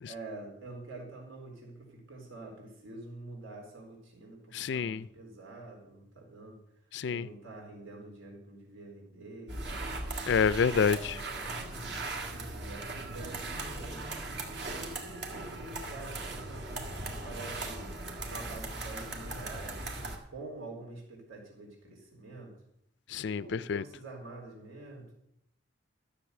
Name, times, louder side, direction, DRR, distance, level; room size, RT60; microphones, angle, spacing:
voice 1, 0.1-6.6 7.0-10.0 10.9-11.9 12.3-14.0 14.6-17.9 18.3-22.5 23.2-25.1, right 2 dB, 85° right, -1 dB, 3.9 m, -47 dB
voice 2, 4.5-5.0 6.9-7.3 10.3-11.2 23.1-23.8, left 6 dB, 60° left, 18 dB, 0.3 m, -28 dB
sound 1, 9.5-20.2, right 2 dB, 55° right, 2.0 m, -38 dB
13.5 x 6.9 x 8.0 m, 0.79 s
head